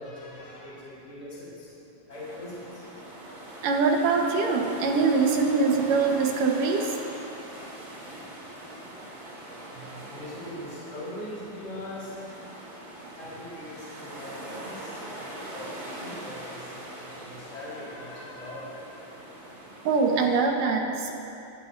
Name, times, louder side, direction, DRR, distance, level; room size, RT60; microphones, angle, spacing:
voice 1, 0.0-1.7 2.1-2.8 9.1-9.5 10.1-12.3 13.2-15.3 15.5-18.8, left 1 dB, 20° left, -8 dB, 4.5 m, -41 dB
sound 1, 2.1-20.4, right 1 dB, 30° right, 3.0 m, -42 dB
voice 2, 3.6-6.9 9.9-10.0 13.0-13.1 19.8-21.1, right 4 dB, 80° right, 1 dB, 3.0 m, -23 dB
25.0 x 17.5 x 2.7 m, 2.8 s
omnidirectional pair, 3.7 m